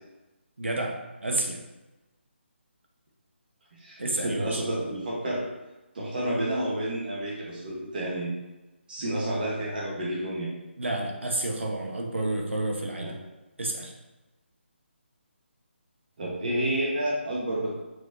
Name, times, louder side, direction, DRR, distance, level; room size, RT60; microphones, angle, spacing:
voice 1, 0.6-1.6 4.0-4.6 10.8-13.2 13.6-13.9, right 2 dB, 70° right, 1 dB, 1.2 m, -30 dB
voice 2, 3.8-5.5 5.9-8.4 8.9-10.5 13.0-13.1 16.2-17.8, right 1 dB, 45° right, -5 dB, 1.5 m, -30 dB
6.4 x 5.2 x 2.8 m, 1.1 s
figure-of-eight pair, 150°, 7 cm